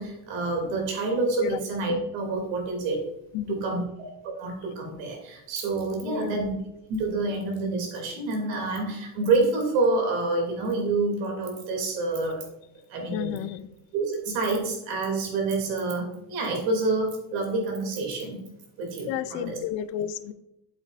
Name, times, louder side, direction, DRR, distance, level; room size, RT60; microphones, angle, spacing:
voice 1, 0.0-3.0 3.5-3.8 4.2-6.5 6.9-12.4 12.9-13.4 13.9-18.4 18.8-19.6, right 3 dB, 90° right, 1 dB, 2.8 m, -27 dB
voice 2, 3.3-3.8 6.0-6.3 13.1-13.7 19.1-20.3, left 11 dB, 80° left, 14 dB, 0.6 m, -32 dB
8.2 x 8.0 x 2.5 m, 0.88 s
cardioid pair, 175°, 43 cm